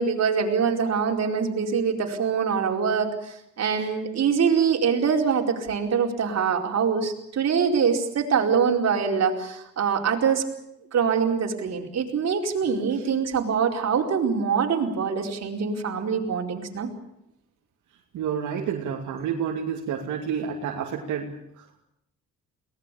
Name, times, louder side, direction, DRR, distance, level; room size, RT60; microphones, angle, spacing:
voice 1, 0.0-10.5 10.9-16.9, right 6 dB, 60° right, 2 dB, 4.7 m, -24 dB
voice 2, 18.1-21.8, right 7 dB, 80° right, 1 dB, 2.7 m, -30 dB
23.0 x 19.0 x 8.5 m, 0.78 s
cardioid pair, 90°, 30 cm